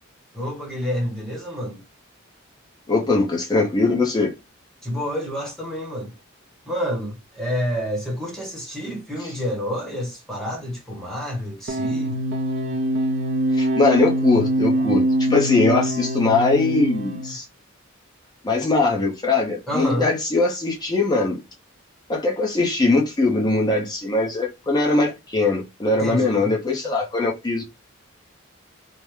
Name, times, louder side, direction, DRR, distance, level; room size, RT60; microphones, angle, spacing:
voice 1, 0.3-1.8 4.8-6.1 6.7-12.2 19.7-20.1 25.9-26.6, equal, ahead, 1.0 m, -28 dB
voice 2, 2.9-4.3 13.5-17.4 18.4-21.4 22.1-27.6, left 3 dB, 20° left, 0.7 m, -21 dB
sound 1, 11.7-17.4, right 1 dB, 60° right, 0.4 m, -23 dB
3.4 x 2.1 x 3.1 m
head